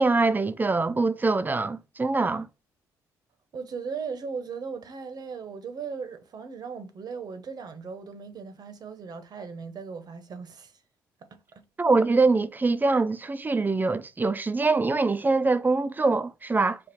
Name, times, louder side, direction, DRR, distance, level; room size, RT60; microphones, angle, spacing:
voice 1, 0.0-2.5 11.8-16.8, right 3 dB, 20° right, 0.5 m, -24 dB
voice 2, 3.5-10.7 11.3-11.6, right 5 dB, 50° right, 0.9 m, -37 dB
4.3 x 2.4 x 4.4 m
hypercardioid pair, 50°, 8 cm